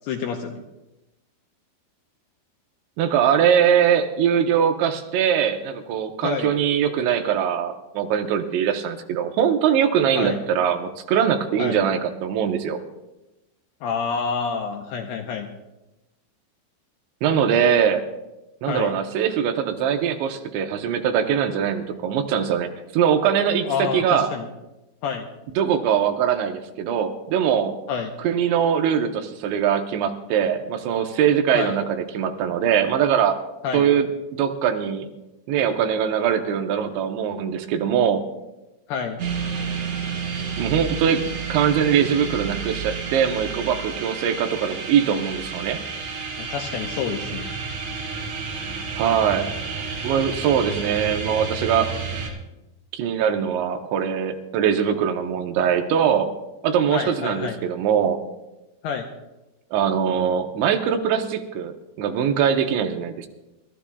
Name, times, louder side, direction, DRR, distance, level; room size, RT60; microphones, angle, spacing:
voice 1, 0.0-0.6 6.2-6.5 10.1-10.4 11.6-11.8 13.8-15.5 18.6-19.0 23.6-24.5 25.0-25.3 27.9-28.1 31.5-31.8 33.6-33.9 38.9-39.2 46.4-47.5 56.9-57.6 58.8-59.1, left 6 dB, 80° left, 3 dB, 2.4 m, -28 dB
voice 2, 3.0-12.8 17.2-18.0 18.6-24.3 25.6-27.8 28.2-33.4 33.7-35.1 35.5-38.2 40.6-45.8 49.0-49.5 50.0-51.9 52.9-56.3 56.6-58.2 59.7-63.3, right 8 dB, 80° right, 5 dB, 3.1 m, -22 dB
sound 1, 39.2-52.3, right 5 dB, 45° right, 3.2 m, -30 dB
28.5 x 14.0 x 2.3 m, 1.0 s
omnidirectional pair, 5.4 m